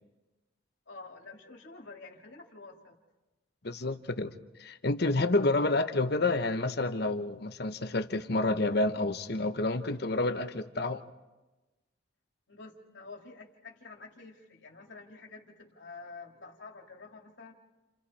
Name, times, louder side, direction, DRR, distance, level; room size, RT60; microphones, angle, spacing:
voice 1, 0.9-2.9 12.5-17.5, left 3 dB, 70° left, 0 dB, 2.5 m, -48 dB
voice 2, 3.6-4.3 4.6-11.0, left 2 dB, 55° left, 8 dB, 1.1 m, -29 dB
29.5 x 29.0 x 4.3 m, 1.1 s
head